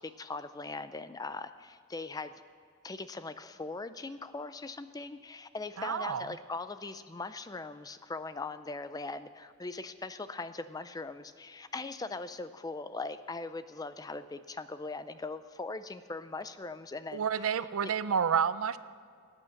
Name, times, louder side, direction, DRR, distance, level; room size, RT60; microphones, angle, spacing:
voice 1, 0.0-2.3 2.8-17.9, left 3 dB, 15° left, 12 dB, 0.4 m, -40 dB
voice 2, 5.8-6.3 17.1-18.8, right 7 dB, 70° right, 15 dB, 0.5 m, -29 dB
17.5 x 9.1 x 6.5 m, 2.2 s
head